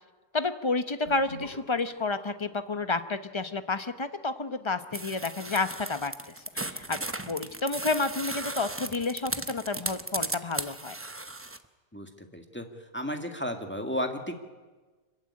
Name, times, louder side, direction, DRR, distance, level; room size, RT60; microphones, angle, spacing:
voice 1, 0.3-7.0 7.3-11.0, left 3 dB, 25° left, 10 dB, 0.8 m, -30 dB
Sink (filling or washing) / Bathtub (filling or washing), 1.0-8.3, equal, 55° right, 7.4 m, -55 dB
sound 1, 4.9-11.6, right 2 dB, 15° right, 0.6 m, -36 dB
voice 2, 11.9-12.7 12.9-14.3, equal, 10° left, 5 dB, 1.8 m, -33 dB
25.5 x 15.0 x 9.7 m, 1.3 s
omnidirectional pair, 1.5 m